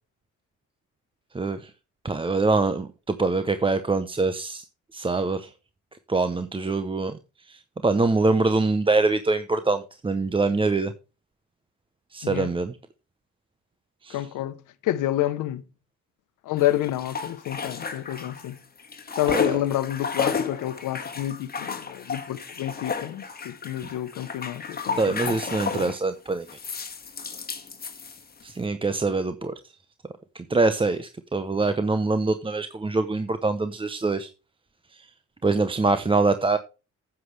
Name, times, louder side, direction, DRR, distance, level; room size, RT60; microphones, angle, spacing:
voice 1, 1.3-1.7 2.0-4.6 4.9-5.5 6.1-7.2 7.5-10.9 12.1-12.8 14.0-14.2 19.3-19.6 25.0-26.5 28.4-29.5 30.3-34.3 34.9-35.1 35.4-36.6, right 3 dB, 15° right, 0.7 m, -24 dB
voice 2, 14.1-15.7 16.4-18.6 19.2-25.4 25.7-25.9, left 14 dB, 85° left, 0.9 m, -29 dB
sound 1, 16.6-18.5 18.8-26.0 26.5-28.5, left 5 dB, 30° left, 1.6 m, -33 dB
10.0 x 8.2 x 3.2 m
cardioid pair, 90°, 30 cm